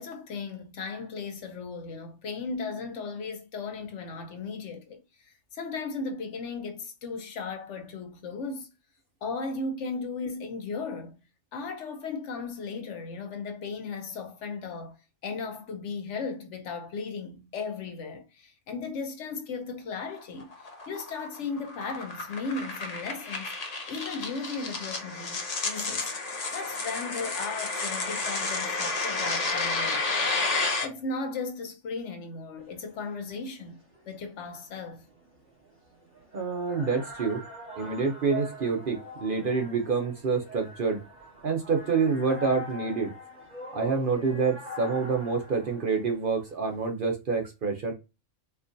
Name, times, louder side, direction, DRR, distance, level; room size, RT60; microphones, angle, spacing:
voice 1, 0.0-8.7 9.2-11.2 11.5-15.0 15.2-23.5 23.9-30.1 30.8-35.1, left 4 dB, 70° left, 1.0 m, -36 dB
sound 1, 20.1-30.9, left 3 dB, 40° left, 0.7 m, -31 dB
sound 2, 32.6-46.8, left 1 dB, 10° right, 1.1 m, -44 dB
voice 2, 36.3-37.4 37.8-41.0 41.4-43.1 43.7-47.9, right 4 dB, 50° right, 0.7 m, -27 dB
4.4 x 2.3 x 2.6 m
omnidirectional pair, 1.3 m